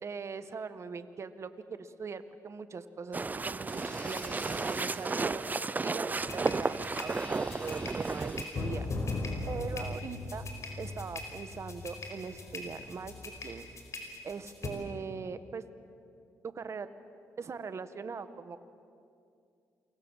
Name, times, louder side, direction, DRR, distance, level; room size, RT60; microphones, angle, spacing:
voice 1, 0.0-5.4 5.8-8.9 9.5-10.5 10.8-13.1 13.4-13.7 14.2-15.6 16.5-16.9 17.4-18.7, right 5 dB, 50° right, 11 dB, 1.7 m, -41 dB
sound 1, 3.1-8.5, right 3 dB, 25° right, 0.6 m, -33 dB
sound 2, 3.7-9.0, equal, 15° left, 7.8 m, -50 dB
sound 3, 6.3-14.7, left 3 dB, 50° left, 5.2 m, -39 dB
28.5 x 23.5 x 7.6 m, 2.4 s
cardioid pair, 65°, 6 cm